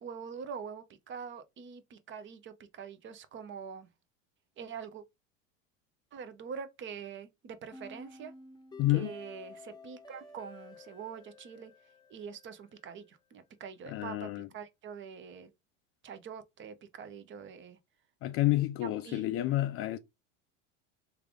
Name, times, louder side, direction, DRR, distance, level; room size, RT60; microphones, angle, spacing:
voice 1, 0.0-3.9 4.6-5.0 6.1-8.3 8.9-11.7 12.1-15.5 16.0-17.8 18.8-19.3, right 6 dB, 30° right, 0.6 m, -44 dB
sound 1, 7.7-12.8, left 3 dB, 10° left, 0.7 m, -51 dB
voice 2, 8.8-9.1 13.9-14.5 18.2-20.0, left 16 dB, 35° left, 0.4 m, -29 dB
3.3 x 2.4 x 3.5 m
hypercardioid pair, 100°, 39 cm